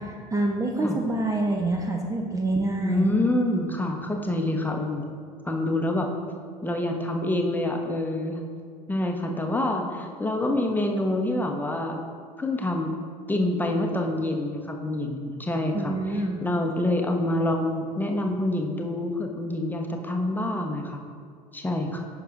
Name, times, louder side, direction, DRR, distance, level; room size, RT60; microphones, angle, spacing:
voice 1, 0.0-3.1 15.7-16.4, right 2 dB, 15° right, 2 dB, 0.7 m, -27 dB
voice 2, 2.8-5.1 5.4-6.1 6.6-8.4 8.9-12.0 12.4-12.9 13.3-21.0 21.5-22.0, left 1 dB, 10° left, 2 dB, 0.9 m, -26 dB
14.5 x 5.7 x 2.5 m, 2.1 s
figure-of-eight pair, 65°, 21 cm